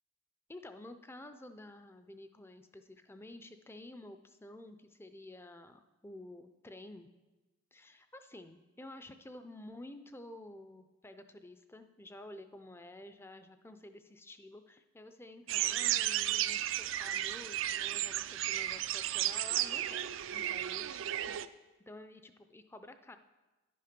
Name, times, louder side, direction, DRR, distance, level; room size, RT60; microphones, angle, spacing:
voice 1, 0.5-7.1 7.7-21.4 21.9-23.2, left 1 dB, 10° left, 9 dB, 0.4 m, -51 dB
sound 1, 15.5-21.5, right 13 dB, 65° right, 0.4 m, -34 dB
10.5 x 8.5 x 5.2 m, 1.1 s
head